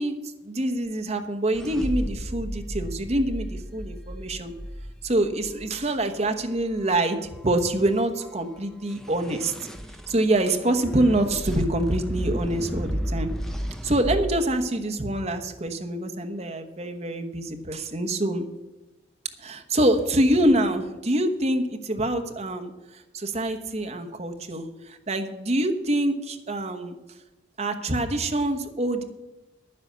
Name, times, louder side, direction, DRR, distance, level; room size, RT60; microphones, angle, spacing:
voice 1, 0.0-4.5 5.0-7.2 7.4-9.5 10.1-13.3 13.8-18.4 19.4-27.0 27.6-29.0, right 1 dB, 35° right, 5 dB, 1.1 m, -25 dB
sound 1, 1.5-5.6 8.9-14.3, equal, ahead, 0.8 m, -33 dB
11.0 x 9.8 x 6.7 m, 1.1 s
head